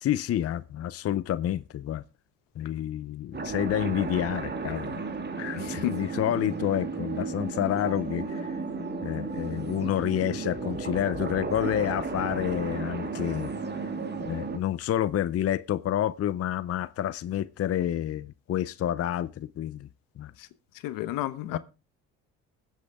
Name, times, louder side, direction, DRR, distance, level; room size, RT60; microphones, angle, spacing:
voice 1, 0.0-2.0 2.6-4.9 5.4-8.6 9.0-13.5 14.2-19.9 20.2-20.3 21.5-21.6, left 11 dB, 45° left, 0.6 m, -29 dB
sound 1, 3.3-14.6, right 4 dB, 30° right, 2.3 m, -34 dB
voice 2, 5.6-6.0 20.4-20.5 20.8-21.6, left 14 dB, 80° left, 1.1 m, -31 dB
20.5 x 8.2 x 3.5 m
supercardioid pair, 70°, 33 cm